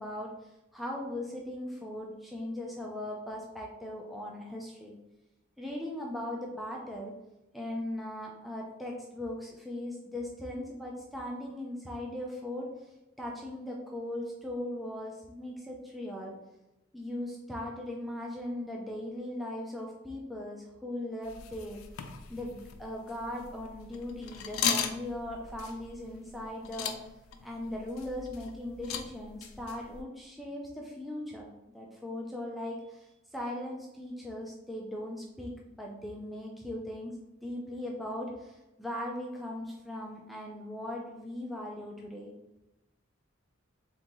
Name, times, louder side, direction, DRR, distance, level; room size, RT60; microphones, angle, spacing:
voice 1, 0.0-5.0 5.6-7.1 7.5-12.7 13.2-16.3 16.9-21.8 22.3-27.0 27.4-37.1 37.4-42.3, left 1 dB, ahead, -2 dB, 0.4 m, -39 dB
sound 1, 21.2-30.0, left 7 dB, 85° left, 0.4 m, -38 dB
3.7 x 3.7 x 3.0 m, 0.95 s
head